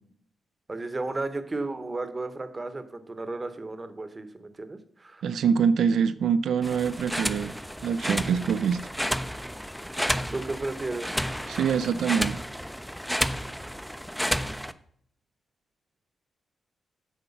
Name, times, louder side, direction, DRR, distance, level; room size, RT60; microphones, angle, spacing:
voice 1, 0.7-5.2 10.3-11.2, right 2 dB, 20° right, 0.8 m, -34 dB
voice 2, 5.2-7.6 7.8-8.9 11.5-12.4, right 7 dB, 85° right, 0.4 m, -25 dB
sound 1, 6.6-14.7, equal, ahead, 0.4 m, -31 dB
7.9 x 4.5 x 7.0 m
wide cardioid pair, 150°, 0 cm